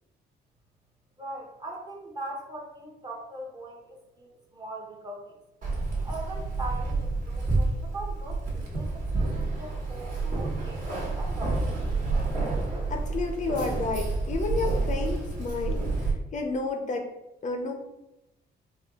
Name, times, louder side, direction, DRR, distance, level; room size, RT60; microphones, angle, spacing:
voice 1, 1.2-5.4 6.0-12.0, right 2 dB, 25° right, -1 dB, 0.8 m, -41 dB
Keys jangling, 5.6-16.1, right 3 dB, 50° right, 1.3 m, -29 dB
voice 2, 12.9-15.8 16.3-17.1 17.4-17.7, left 3 dB, 45° left, 4 dB, 0.5 m, -30 dB
4.3 x 2.3 x 3.5 m, 0.94 s
cardioid pair, 125°, 18 cm